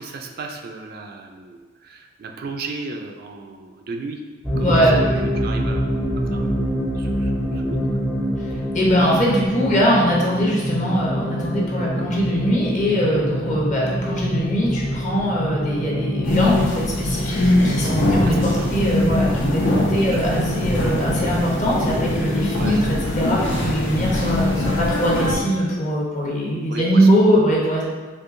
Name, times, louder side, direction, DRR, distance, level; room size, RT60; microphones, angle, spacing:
voice 1, 0.0-4.2 4.6-5.9 6.2-8.0 18.2-18.7 20.1-20.2 22.5-22.8 26.7-27.1, right 3 dB, 55° right, 3 dB, 0.3 m, -35 dB
sound 1, 4.4-23.0, equal, 10° left, 0.5 m, -26 dB
voice 2, 4.5-5.1 8.7-27.8, equal, 40° left, -4 dB, 0.8 m, -21 dB
sound 2, 16.2-25.4, left 1 dB, 75° left, 0.7 m, -22 dB
4.4 x 2.7 x 2.5 m, 1.4 s
head